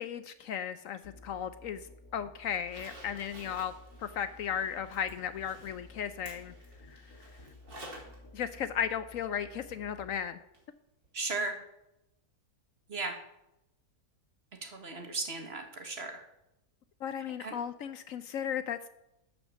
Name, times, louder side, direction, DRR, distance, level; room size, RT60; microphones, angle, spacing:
voice 1, 0.0-1.9 2.1-3.7 4.0-6.5 6.9-7.0 8.3-10.4 17.0-18.9, left 8 dB, 70° left, 12 dB, 0.9 m, -35 dB
Musical instrument, 1.0-10.3, left 2 dB, 90° left, 2.3 m, -54 dB
Zipper (clothing), 2.5-8.2 8.5-8.6 10.5-10.6 11.0-11.1, right 1 dB, 85° right, 3.4 m, -52 dB
voice 2, 11.1-11.6 12.9-13.2 14.6-16.2 17.4-17.5, right 3 dB, 45° right, 4 dB, 1.8 m, -36 dB
12.5 x 5.3 x 7.0 m, 0.87 s
omnidirectional pair, 1.6 m